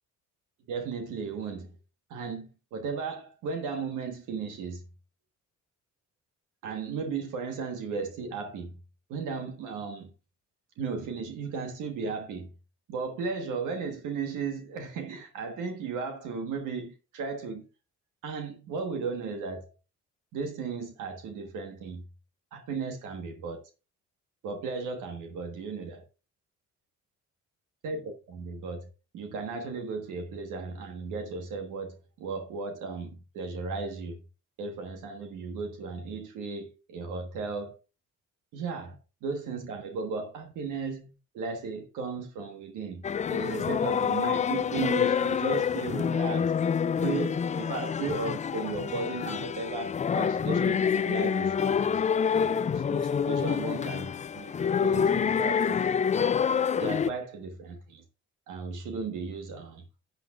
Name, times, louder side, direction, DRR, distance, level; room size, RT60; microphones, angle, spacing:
voice 1, 0.7-1.8 2.1-4.8 6.6-8.8 9.1-10.1 10.8-12.5 12.9-17.7 18.2-19.7 20.3-22.0 22.5-23.7 24.4-26.0 27.8-34.2 34.6-37.8 38.5-39.0 39.2-43.0 43.3-46.5 47.0-52.0 52.3-55.8 56.8-58.0 58.5-59.8, right 4 dB, 90° right, 1.4 m, -35 dB
sound 1, 43.0-57.1, left 7 dB, 25° left, 0.3 m, -27 dB
12.0 x 8.5 x 2.5 m
cardioid pair, 90°, 30 cm